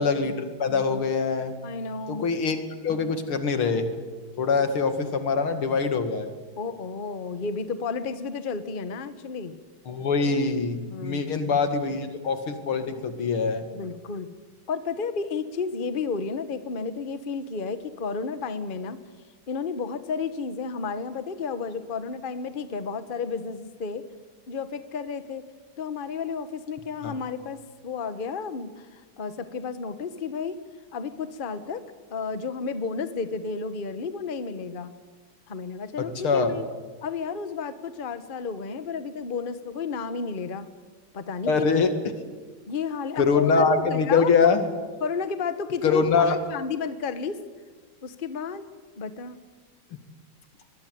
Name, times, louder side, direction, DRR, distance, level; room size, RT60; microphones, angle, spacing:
voice 1, 0.0-1.5 2.1-2.6 2.8-3.9 4.4-6.3 9.9-13.7 27.0-27.1 36.0-36.6 41.5-41.9 43.2-44.7 45.8-46.4, left 5 dB, 85° left, 8 dB, 2.9 m, -23 dB
voice 2, 1.6-2.3 6.6-9.5 10.8-11.7 13.7-14.3 14.7-19.0 19.5-24.1 24.5-25.4 25.8-30.6 30.9-34.9 35.5-36.7 37.0-40.7 41.1-41.5 42.7-44.3 45.0-47.4 48.0-48.7 49.0-49.4, left 5 dB, 30° left, 11 dB, 1.1 m, -32 dB
23.5 x 21.5 x 9.4 m, 1.4 s
omnidirectional pair, 2.3 m